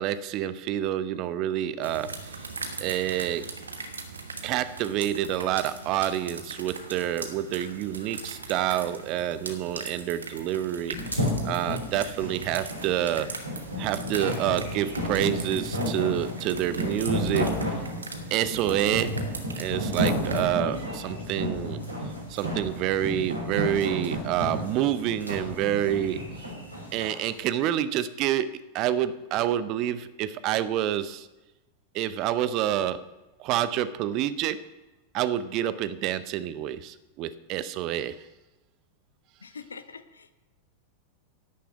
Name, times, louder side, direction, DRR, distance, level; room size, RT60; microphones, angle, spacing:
voice 1, 0.0-2.1 2.8-3.5 4.4-13.3 13.8-17.5 18.3-19.2 19.6-21.8 22.3-26.2 26.9-28.5 28.7-31.3 31.9-33.0 33.4-34.6 35.1-38.2, right 11 dB, 40° right, 15 dB, 0.6 m, -28 dB
sound 1, 1.8-20.4, right 4 dB, 75° right, 1.2 m, -40 dB
sound 2, 10.9-27.2, equal, 90° left, 3.6 m, -31 dB
voice 2, 39.4-40.3, left 5 dB, 75° left, 13 dB, 0.7 m, -44 dB
11.0 x 6.8 x 7.7 m, 1.1 s
figure-of-eight pair, 90°, 0 cm